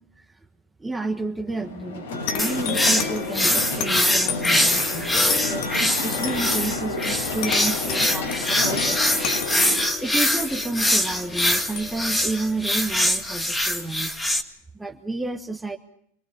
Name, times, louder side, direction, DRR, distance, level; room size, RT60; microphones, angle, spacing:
voice 1, 0.1-0.5 0.8-9.4 10.0-14.1 14.7-15.8, right 2 dB, 5° right, 3 dB, 1.5 m, -31 dB
sound 1, 1.5-9.8, left 2 dB, 85° left, 7.5 m, -31 dB
sound 2, 2.3-13.4, left 8 dB, 55° left, 2.3 m, -33 dB
sound 3, 2.4-14.4, left 1 dB, 10° left, 2.0 m, -23 dB
27.0 x 19.0 x 7.2 m, 0.69 s
supercardioid pair, 120°, 0 cm